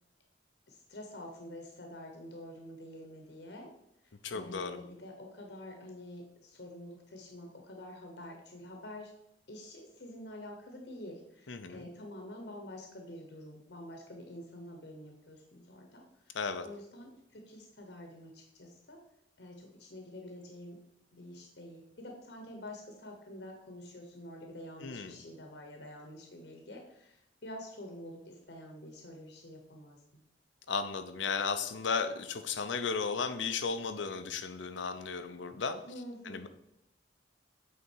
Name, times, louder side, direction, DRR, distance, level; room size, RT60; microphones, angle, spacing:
voice 1, 0.7-3.7 4.0-9.1 9.5-16.4 16.6-19.0 19.4-20.8 21.1-30.0 35.8-36.5, left 1 dB, 65° left, 2 dB, 1.1 m, -47 dB
voice 2, 4.2-4.8 11.5-11.9 16.3-16.7 24.8-25.2 30.7-35.8 36.3-36.5, left 5 dB, 85° left, 9 dB, 0.7 m, -35 dB
8.3 x 3.8 x 4.6 m, 0.81 s
head